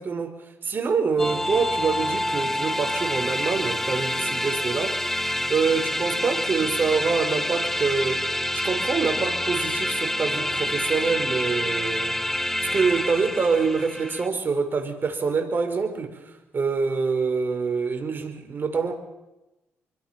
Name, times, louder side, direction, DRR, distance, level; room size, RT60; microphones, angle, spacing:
voice 1, 0.0-8.2 8.5-12.2 12.6-18.9, right 5 dB, 45° right, 5 dB, 5.1 m, -26 dB
sound 1, 1.2-14.3, left 1 dB, 5° left, 1.4 m, -27 dB
26.5 x 23.5 x 6.1 m, 0.98 s
supercardioid pair, 70°, 5 cm